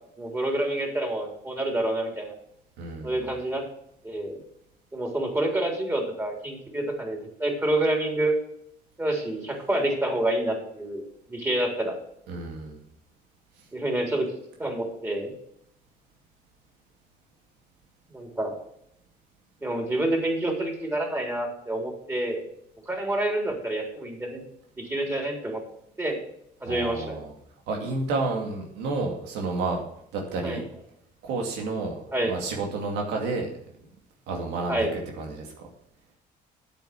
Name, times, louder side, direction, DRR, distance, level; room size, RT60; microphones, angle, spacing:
voice 1, 0.2-2.3 3.0-3.6 4.0-4.4 4.9-8.3 9.0-11.0 11.3-11.9 13.7-14.3 14.6-15.3 18.1-18.5 19.6-22.4 22.9-24.4 24.8-25.6 26.0-26.2 26.6-27.2 30.4-30.6 32.1-32.3 34.7-34.9, right 1 dB, 15° right, 1 dB, 3.9 m, -28 dB
voice 2, 2.8-3.2 12.3-12.8 26.7-27.3 27.7-29.8 30.1-30.7 31.2-33.5 34.3-35.5, right 3 dB, 90° right, 1 dB, 2.4 m, -30 dB
9.1 x 8.3 x 6.1 m, 0.72 s
cardioid pair, 110°, 17 cm